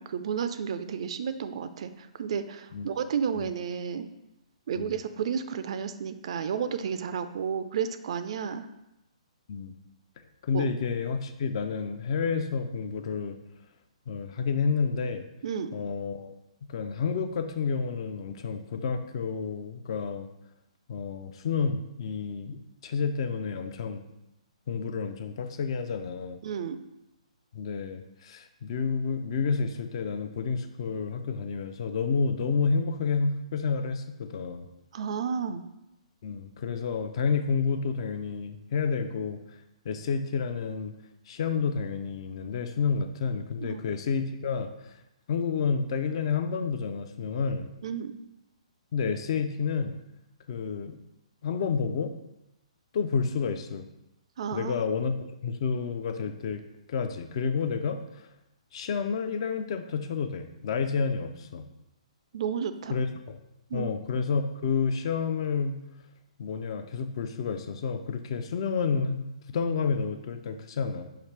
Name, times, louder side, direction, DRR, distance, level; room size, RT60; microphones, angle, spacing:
voice 1, 0.0-4.0 4.7-8.7 10.5-10.6 15.4-15.7 26.4-26.8 34.9-35.7 43.6-43.8 47.8-48.1 54.4-54.7 62.3-63.0 63.7-63.9, right 7 dB, 60° right, 11 dB, 0.3 m, -32 dB
voice 2, 10.4-13.4 14.1-15.2 15.7-16.3 16.7-20.3 20.9-22.6 22.8-24.0 24.7-26.4 27.5-34.7 36.2-39.4 39.8-40.9 41.3-44.9 45.3-47.7 48.9-50.0 50.5-51.0 51.4-52.2 52.9-53.9 54.5-56.6 56.9-58.2 58.7-61.7 62.9-63.4 63.7-65.8 66.4-71.1, left 5 dB, 50° left, 8 dB, 0.4 m, -30 dB
5.8 x 2.4 x 3.3 m, 0.89 s
hypercardioid pair, 135°, 4 cm